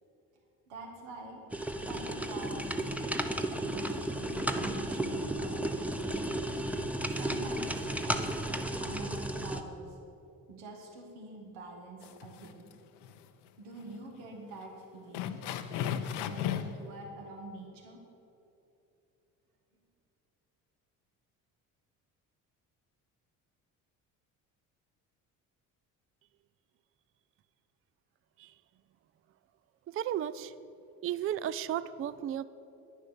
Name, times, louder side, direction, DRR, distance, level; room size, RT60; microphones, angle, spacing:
voice 1, 0.7-1.4 1.8-3.0 3.6-6.1 7.1-7.7 8.0-10.0 10.5-12.7 13.6-15.4 15.7-18.0, right 2 dB, 80° right, 1 dB, 2.1 m, -46 dB
sound 1, 1.5-9.6, right 1 dB, 5° right, 0.8 m, -33 dB
sound 2, 12.0-12.7 13.0-13.2 13.8-13.9 14.2-14.3 15.1-16.8, left 9 dB, 70° left, 0.8 m, -35 dB
voice 2, 29.9-30.5 31.0-32.4, right 10 dB, 35° right, 16 dB, 0.4 m, -34 dB
10.0 x 9.9 x 6.7 m, 2.8 s
supercardioid pair, 65°, 42 cm